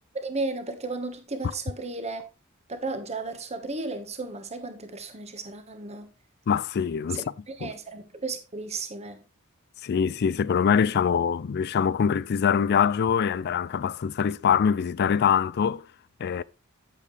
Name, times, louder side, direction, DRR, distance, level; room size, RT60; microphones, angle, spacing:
voice 1, 0.1-2.3 2.7-6.1 7.1-9.2, right 3 dB, 30° right, 1.4 m, -34 dB
voice 2, 6.5-7.2 7.6-7.7 9.8-15.9 16.2-16.4, left 7 dB, 50° left, 0.4 m, -24 dB
8.7 x 8.3 x 3.3 m
head